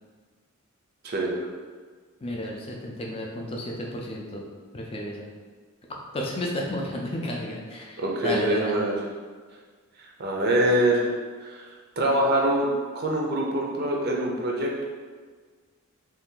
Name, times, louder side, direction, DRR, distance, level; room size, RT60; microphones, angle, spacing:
voice 1, 1.0-1.4 8.0-9.0 10.0-11.1 11.4-12.7 12.9-14.8, right 1 dB, 45° right, -1 dB, 0.5 m, -25 dB
voice 2, 2.2-4.4 4.7-5.3 6.1-8.7, left 1 dB, 25° left, -1 dB, 0.4 m, -32 dB
2.7 x 2.4 x 3.6 m, 1.5 s
head